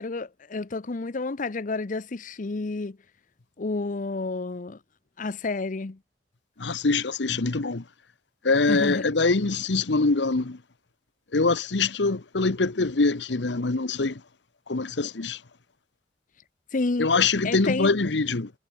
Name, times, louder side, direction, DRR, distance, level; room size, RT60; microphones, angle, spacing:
voice 1, 0.0-3.0 3.6-4.8 5.2-6.0 8.7-9.1 16.7-17.1 17.4-17.9, left 3 dB, 45° left, 0.7 m, -30 dB
voice 2, 6.6-7.8 8.4-10.6 11.3-14.2 14.7-15.4 17.0-18.5, left 3 dB, 80° left, 1.0 m, -24 dB
head